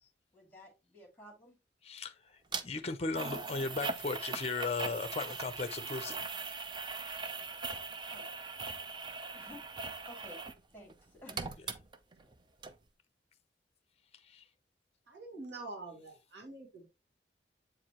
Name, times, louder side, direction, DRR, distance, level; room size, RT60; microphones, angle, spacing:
voice 1, 0.3-1.6 8.1-8.2 9.3-9.7 10.1-10.4 10.7-11.6, left 1 dB, 10° left, 2.5 m, -52 dB
voice 2, 1.8-6.2 14.3-14.4, left 3 dB, 35° left, 0.6 m, -37 dB
sound 1, 2.5-2.6 3.2-10.6 10.9-12.3 12.6-12.7, right 4 dB, 25° right, 0.5 m, -40 dB
voice 3, 15.1-16.9, right 2 dB, 80° right, 2.2 m, -46 dB
7.8 x 4.8 x 2.9 m
head